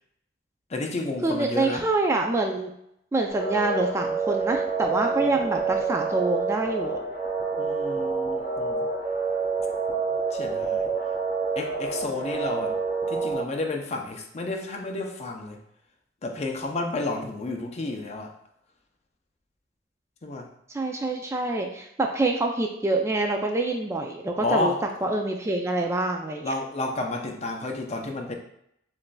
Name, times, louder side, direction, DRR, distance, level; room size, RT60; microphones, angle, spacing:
voice 1, 0.7-1.8 5.1-5.2 7.6-8.9 10.3-10.9 11.6-12.8 13.1-15.6 16.2-18.3 20.2-20.5 24.4-24.8 26.4-28.3, left 2 dB, 35° left, 2 dB, 0.6 m, -31 dB
voice 2, 1.2-2.7 3.1-7.0 20.7-24.7 25.0-26.5, right 2 dB, 15° right, 2 dB, 0.3 m, -26 dB
sound 1, 3.3-13.4, right 4 dB, 55° left, 1.4 m, -28 dB
6.9 x 2.6 x 2.2 m, 0.75 s
head